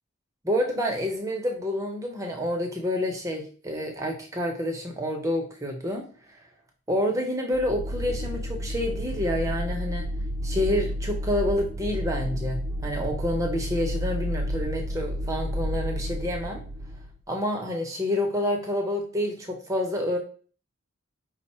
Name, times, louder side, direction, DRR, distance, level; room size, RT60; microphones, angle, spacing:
voice 1, 0.4-6.0 6.3-6.4 6.9-10.1 10.4-16.6 17.3-20.2, left 1 dB, 15° right, 2 dB, 0.7 m, -28 dB
sound 1, 7.5-17.2, equal, 75° right, 0.7 m, -31 dB
5.3 x 2.1 x 4.1 m, 0.40 s
head